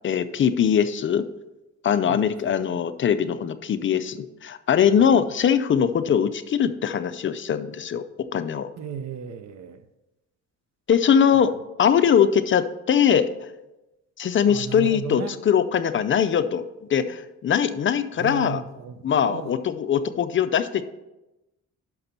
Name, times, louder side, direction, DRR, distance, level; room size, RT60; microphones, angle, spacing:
voice 1, 0.0-1.2 1.8-8.0 8.3-8.7 10.9-11.5 11.8-13.3 14.2-18.6 19.0-20.8, left 8 dB, 40° left, 0.5 m, -21 dB
voice 2, 2.1-2.7 5.0-5.2 8.8-9.8 11.3-11.5 14.5-15.4 18.2-19.5, right 7 dB, 65° right, 0.7 m, -36 dB
6.0 x 5.7 x 5.2 m
cardioid pair, 90°, 30 cm